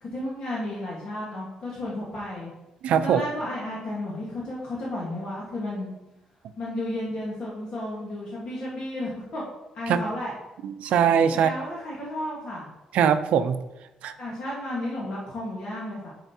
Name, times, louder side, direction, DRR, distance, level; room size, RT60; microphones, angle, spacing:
voice 1, 0.0-2.5 3.0-5.9 6.6-9.4 9.7-10.3 11.4-12.7 14.2-16.1, left 1 dB, 45° left, -6 dB, 1.4 m, -33 dB
voice 2, 2.8-3.2 9.9-10.0 10.6-11.5 12.9-13.6 14.0-14.1, right 8 dB, 75° right, 10 dB, 0.5 m, -21 dB
9.1 x 5.1 x 2.8 m, 0.99 s
cardioid pair, 165°, 2 cm